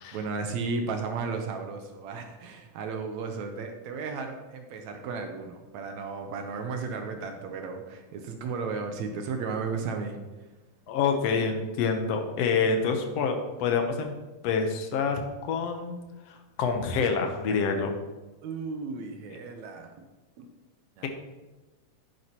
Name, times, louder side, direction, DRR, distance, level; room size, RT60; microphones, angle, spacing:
voice 1, 0.1-10.2 18.4-19.9 20.4-20.5 21.0-21.1, right 4 dB, 75° right, 5 dB, 1.9 m, -34 dB
voice 2, 10.9-14.1 14.4-16.0 16.3-17.9 21.0-21.1, left 5 dB, 65° left, 5 dB, 1.7 m, -27 dB
10.5 x 9.3 x 2.9 m, 1.2 s
omnidirectional pair, 3.6 m